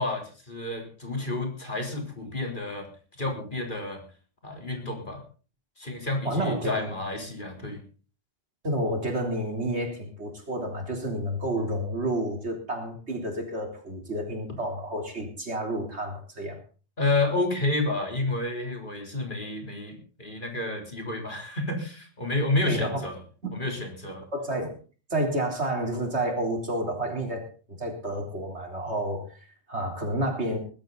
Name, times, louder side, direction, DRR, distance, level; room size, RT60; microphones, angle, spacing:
voice 1, 0.0-2.9 3.2-4.0 4.4-5.2 5.8-7.8 17.0-23.2 23.5-24.2, left 2 dB, 50° left, 3 dB, 4.0 m, -30 dB
voice 2, 6.2-6.9 8.6-16.6 22.7-23.0 23.4-23.6 24.3-24.7 25.1-30.6, right 1 dB, 80° right, 3 dB, 3.9 m, -30 dB
20.0 x 13.0 x 4.0 m, 0.37 s
omnidirectional pair, 1.1 m